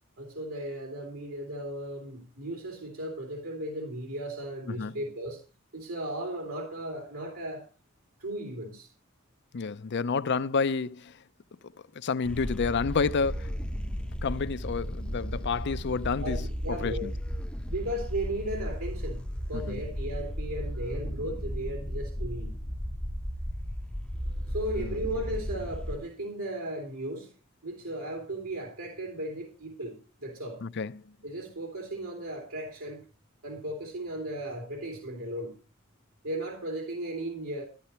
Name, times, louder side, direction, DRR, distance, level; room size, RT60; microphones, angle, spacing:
voice 1, 0.2-5.4 5.7-7.7 8.2-8.9 16.2-17.1 17.7-22.5 24.5-27.3 27.6-30.6 31.2-33.0 33.4-35.5 36.2-37.6, right 1 dB, 80° right, 3.0 m, -36 dB
voice 2, 9.5-11.1 12.0-13.5 14.2-16.4 16.8-17.1 19.5-19.8 24.8-25.0 30.6-31.0, left 5 dB, 55° left, 0.5 m, -29 dB
sound 1, 12.2-26.0, equal, 5° left, 0.6 m, -35 dB
13.0 x 11.5 x 4.3 m
head